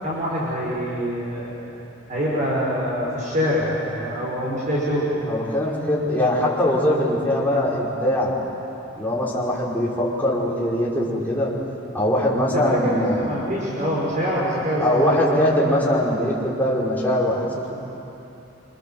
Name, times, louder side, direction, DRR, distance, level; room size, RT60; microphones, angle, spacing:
voice 1, 0.0-1.5 2.1-5.1 12.5-15.7, equal, 40° right, -6 dB, 5.7 m, -25 dB
voice 2, 5.2-8.3 8.9-11.5 11.9-13.3 14.8-17.8, left 1 dB, 10° left, -6 dB, 5.0 m, -22 dB
26.5 x 26.0 x 7.7 m, 3.0 s
head